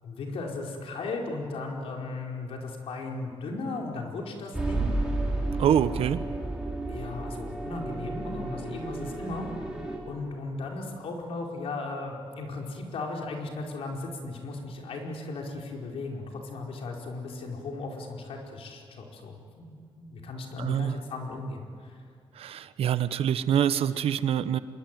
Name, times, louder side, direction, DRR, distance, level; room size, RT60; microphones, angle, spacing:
voice 1, 0.0-4.9 6.9-9.5 10.1-22.0, left 3 dB, 80° left, 0 dB, 4.7 m, -36 dB
sound 1, 4.5-10.0, right 2 dB, 10° right, 5.1 m, -32 dB
voice 2, 5.6-6.2 20.6-21.0 22.4-24.6, right 9 dB, 90° right, 13 dB, 1.0 m, -25 dB
26.0 x 22.5 x 9.2 m, 2.3 s
wide cardioid pair, 165°, 10 cm